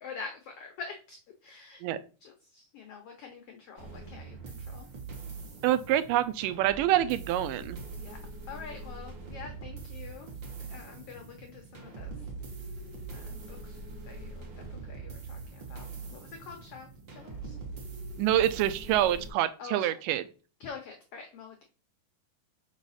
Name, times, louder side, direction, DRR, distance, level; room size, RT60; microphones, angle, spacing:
voice 1, 0.0-1.2 1.4-1.8 2.2-4.9 8.0-8.2 8.5-10.3 10.7-12.1 13.1-13.8 14.0-16.9 17.1-17.5 19.6-19.9 20.6-21.5, left 5 dB, 80° left, 4 dB, 1.3 m, -45 dB
sound 1, 3.8-19.3, right 3 dB, 55° right, 1.4 m, -43 dB
voice 2, 5.6-7.8 18.2-20.3, right 12 dB, 85° right, 12 dB, 2.2 m, -26 dB
5.3 x 4.9 x 4.0 m, 0.35 s
omnidirectional pair, 3.8 m